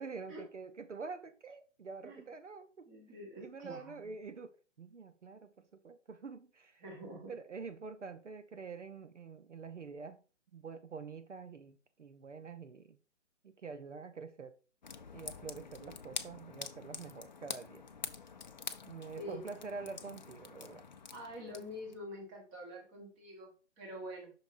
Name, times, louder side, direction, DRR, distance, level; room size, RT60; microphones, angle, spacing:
voice 1, 0.0-2.9 3.4-6.8 7.3-10.2 10.5-13.0 13.4-14.5 15.1-17.9 18.9-20.8, right 4 dB, 70° right, 0.8 m, -46 dB
voice 2, 2.9-4.1 6.8-7.3 19.1-19.4 21.1-24.3, equal, 15° right, 1.3 m, -46 dB
sound 1, 14.8-22.0, left 5 dB, 40° left, 0.5 m, -46 dB
6.8 x 5.9 x 2.6 m
figure-of-eight pair, 140°, 37 cm